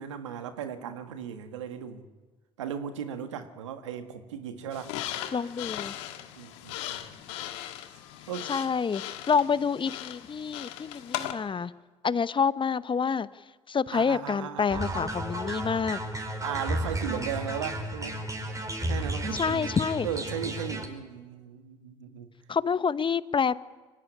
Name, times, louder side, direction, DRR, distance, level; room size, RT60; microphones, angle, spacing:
voice 1, 0.0-2.1 2.6-5.3 6.3-7.0 8.3-8.7 13.9-15.0 16.4-18.2 18.8-22.3, right 8 dB, 90° right, 8 dB, 1.6 m, -37 dB
sound 1, 4.7-11.3, left 13 dB, 80° left, 1.6 m, -38 dB
voice 2, 5.3-5.9 8.5-11.7 12.0-13.3 13.7-16.0 19.3-20.1 22.5-23.5, left 6 dB, 35° left, 16 dB, 0.9 m, -27 dB
sound 2, 14.7-20.9, right 1 dB, 20° right, 5.1 m, -33 dB
23.5 x 17.0 x 9.9 m, 1.3 s
hypercardioid pair, 55°, 15 cm